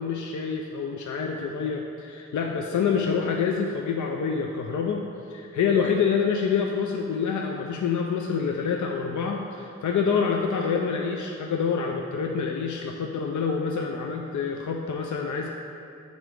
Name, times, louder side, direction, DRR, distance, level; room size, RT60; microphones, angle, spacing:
voice 1, 0.0-15.5, left 6 dB, 80° left, 1 dB, 0.5 m, -27 dB
6.8 x 3.9 x 4.7 m, 2.7 s
cardioid pair, 60°, 30 cm